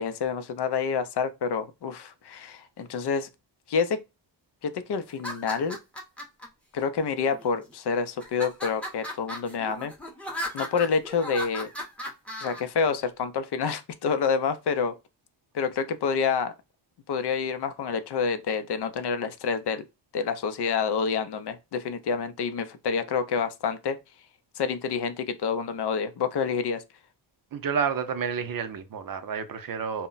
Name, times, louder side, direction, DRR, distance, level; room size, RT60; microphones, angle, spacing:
voice 1, 0.0-3.3 3.7-4.0 4.6-5.8 6.7-9.9 10.5-11.7 12.4-14.9 15.5-16.5 17.1-19.8 20.1-24.0 24.6-26.8, left 5 dB, 60° left, 0.5 m, -28 dB
sound 1, 5.1-6.5 7.2-7.7 8.2-12.6, equal, 5° left, 0.7 m, -36 dB
voice 2, 27.5-30.1, right 6 dB, 50° right, 0.5 m, -30 dB
2.1 x 2.1 x 3.8 m
wide cardioid pair, 105°, 45 cm